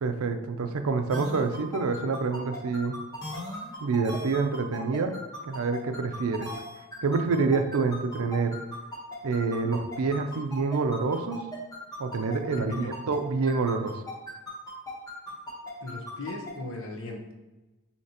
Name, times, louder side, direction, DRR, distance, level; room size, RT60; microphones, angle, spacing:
voice 1, 0.0-3.0 3.8-5.2 5.4-6.5 7.0-8.6 9.2-11.4 12.0-14.0, right 4 dB, 75° right, 8 dB, 0.4 m, -27 dB
sound 1, 1.1-13.2 13.5-16.5, left 1 dB, 15° left, 1.0 m, -38 dB
voice 2, 12.6-13.0 15.8-17.3, left 2 dB, 65° left, 1 dB, 0.8 m, -37 dB
6.4 x 2.9 x 2.8 m, 1.1 s
head